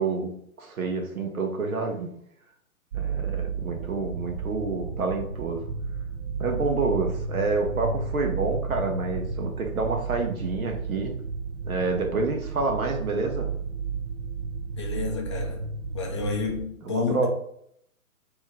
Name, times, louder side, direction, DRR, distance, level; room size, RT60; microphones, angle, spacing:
voice 1, 0.0-2.1 2.9-5.7 6.4-11.1 11.6-13.5 16.8-17.3, right 3 dB, 70° right, 1.2 m, -28 dB
sound 1, 2.9-16.7, right 4 dB, 50° right, 0.4 m, -32 dB
voice 2, 14.8-15.7 15.9-17.3, left 4 dB, 20° left, 0.4 m, -30 dB
4.4 x 3.0 x 3.6 m
hypercardioid pair, 135°, 44 cm